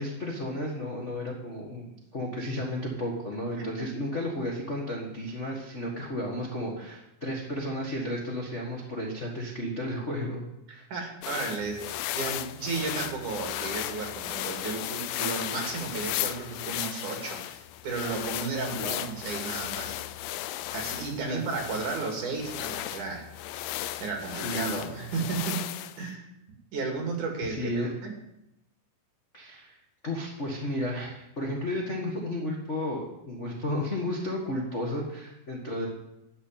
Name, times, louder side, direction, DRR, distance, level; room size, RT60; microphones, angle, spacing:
voice 1, 0.0-1.9 2.1-10.4 10.7-10.8 18.7-19.1 21.2-21.4 24.4-24.9 27.4-27.9 29.3-29.8 30.0-35.9, left 1 dB, 45° left, -3 dB, 0.9 m, -33 dB
voice 2, 10.9-20.0 20.7-23.3 23.5-25.6 26.0-26.3 26.7-27.7 28.0-28.2, right 4 dB, 55° right, 2 dB, 3.6 m, -34 dB
sound 1, 11.2-26.0, left 14 dB, 80° left, 2.3 m, -35 dB
12.5 x 6.0 x 9.1 m, 0.86 s
omnidirectional pair, 4.3 m